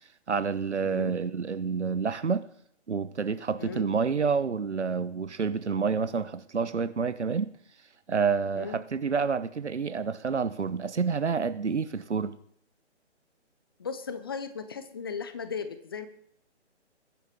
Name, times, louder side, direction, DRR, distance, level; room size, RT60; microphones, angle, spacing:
voice 1, 0.3-2.5 2.9-7.5 8.1-12.4, right 5 dB, 70° right, 1.0 m, -28 dB
voice 2, 0.8-1.2 3.6-3.9 8.5-8.8 13.8-16.1, left 6 dB, 20° left, 0.6 m, -36 dB
21.5 x 10.5 x 3.7 m
figure-of-eight pair, 140°, 36 cm